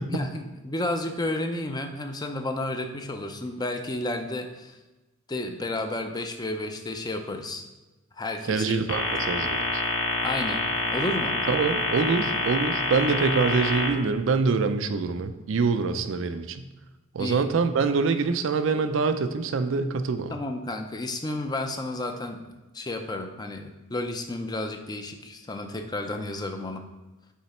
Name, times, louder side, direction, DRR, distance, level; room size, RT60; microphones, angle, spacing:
voice 1, 0.1-4.8 5.3-7.6 8.2-8.8 10.2-10.6 10.9-11.3 17.2-17.5 20.3-22.4 22.7-26.8, left 2 dB, 20° left, 5 dB, 0.5 m, -31 dB
voice 2, 8.4-9.8 11.5-16.7 17.1-20.4, right 4 dB, 65° right, 9 dB, 0.4 m, -25 dB
sound 1, 8.9-13.9, left 2 dB, 80° left, 1.0 m, -27 dB
7.3 x 3.9 x 4.3 m, 1.1 s
head